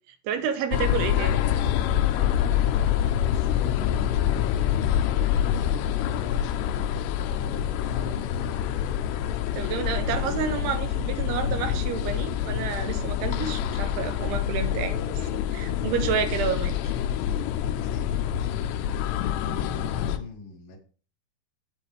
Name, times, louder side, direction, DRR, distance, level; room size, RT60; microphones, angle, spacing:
voice 1, 0.2-1.4 9.5-17.0, right 7 dB, 75° right, 2.8 m, -30 dB
sound 1, 0.7-20.2, left 10 dB, 85° left, 2.8 m, -26 dB
voice 2, 3.2-5.1 5.4-8.5 17.6-19.1 19.4-20.8, left 5 dB, 55° left, 1.6 m, -43 dB
9.0 x 9.0 x 3.3 m
omnidirectional pair, 5.0 m